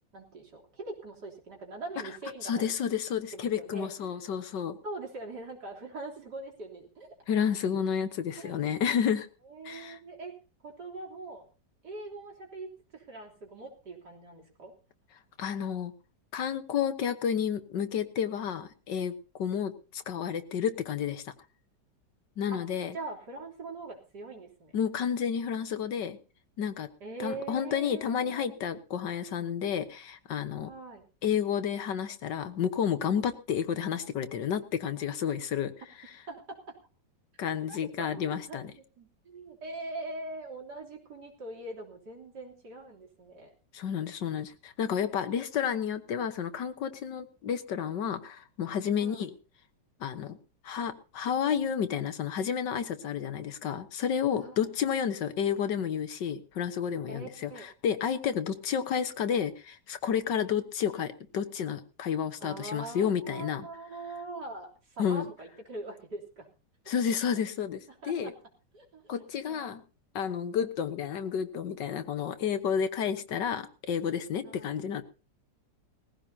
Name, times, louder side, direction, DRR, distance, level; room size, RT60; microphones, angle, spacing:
voice 1, 0.1-2.7 3.3-4.2 4.8-7.1 8.4-8.8 9.5-10.4 10.6-11.5 11.8-14.7 22.5-22.6 22.9-24.7 27.0-28.6 30.7-31.0 36.3-36.8 37.7-37.8 38.1-43.5 49.0-49.3 54.4-54.6 57.1-57.7 62.4-66.5 67.9-68.3 68.7-69.8 74.4-74.7, right 2 dB, 60° right, 0 dB, 3.9 m, -42 dB
voice 2, 2.4-4.8 7.3-9.3 9.6-10.0 15.4-15.9 16.3-19.1 19.4-21.3 22.4-22.9 24.7-26.2 26.6-26.9 27.2-30.7 31.2-35.7 37.4-38.7 43.7-49.3 50.0-50.4 50.6-63.6 65.0-65.2 66.9-68.3 69.1-69.8 70.1-75.0, left 8 dB, 70° left, 10 dB, 1.7 m, -31 dB
20.5 x 15.5 x 2.8 m, 0.33 s
omnidirectional pair, 2.0 m